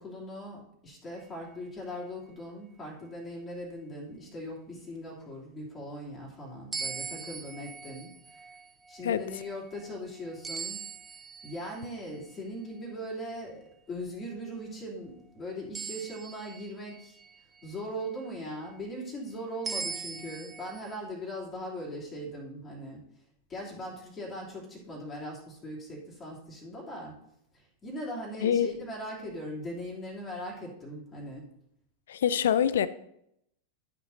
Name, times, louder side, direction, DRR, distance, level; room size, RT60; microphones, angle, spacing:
voice 1, 0.0-8.4 8.9-10.9 11.4-17.2 17.6-23.1 23.5-27.2 27.5-31.5, equal, 20° left, 3.0 m, -40 dB
sound 1, 6.7-12.2 15.8-17.8 19.7-21.0, right 6 dB, 15° right, 0.4 m, -41 dB
voice 2, 28.4-28.7 32.1-32.9, left 9 dB, 60° left, 0.4 m, -25 dB
13.0 x 6.1 x 2.8 m
figure-of-eight pair, 90°, 0 cm